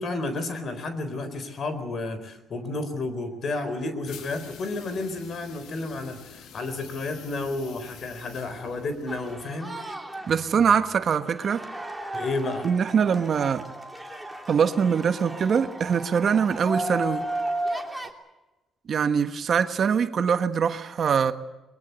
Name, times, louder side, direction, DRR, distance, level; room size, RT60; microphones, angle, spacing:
voice 1, 0.0-9.7 12.1-12.7, left 2 dB, 55° left, 4.2 m, -31 dB
sound 1, 4.0-9.7, left 8 dB, 80° left, 2.0 m, -47 dB
sound 2, 9.1-18.1, right 1 dB, 5° right, 3.1 m, -35 dB
voice 2, 10.3-11.6 12.6-13.7 14.5-17.3 18.9-21.3, right 7 dB, 55° right, 1.3 m, -23 dB
22.5 x 22.0 x 8.1 m
cardioid pair, 90°, 0 cm